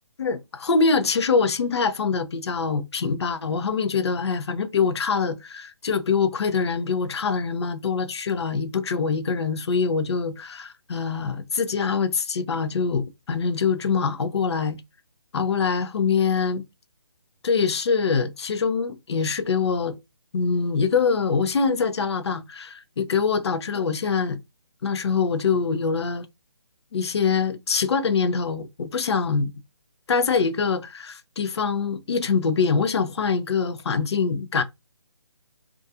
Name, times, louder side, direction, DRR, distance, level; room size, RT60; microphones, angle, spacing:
voice 1, 0.2-14.8 15.3-16.6 17.4-20.0 20.3-24.4 24.8-26.3 26.9-29.5 30.1-34.6, left 5 dB, 65° left, 0.5 m, -24 dB
2.4 x 2.3 x 2.6 m
figure-of-eight pair, 150°, 15 cm